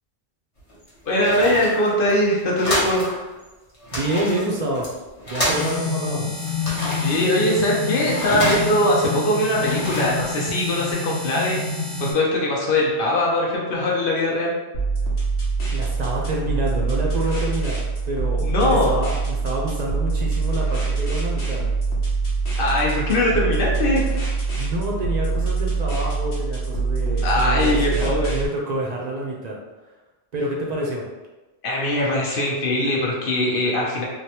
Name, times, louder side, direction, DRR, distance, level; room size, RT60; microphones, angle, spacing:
sound 1, 0.6-3.1 3.4-3.5 3.7-6.0 6.4-8.9 9.4-10.9, left 1 dB, 35° left, 0.9 m, -29 dB
voice 1, 1.1-3.2 7.0-11.6 12.0-14.5 18.4-18.9 22.6-24.0 27.2-28.4 31.6-34.1, left 1 dB, 60° left, -3 dB, 0.9 m, -21 dB
voice 2, 3.9-4.9 5.3-6.4 15.7-21.6 24.6-29.6 30.3-31.0, right 1 dB, 50° right, -2 dB, 0.6 m, -28 dB
sound 2, 5.5-12.1, left 4 dB, ahead, 0.6 m, -28 dB
sound 3, 14.7-28.5, right 4 dB, 80° left, 1.1 m, -24 dB
3.3 x 2.2 x 2.8 m, 1.1 s
omnidirectional pair, 1.1 m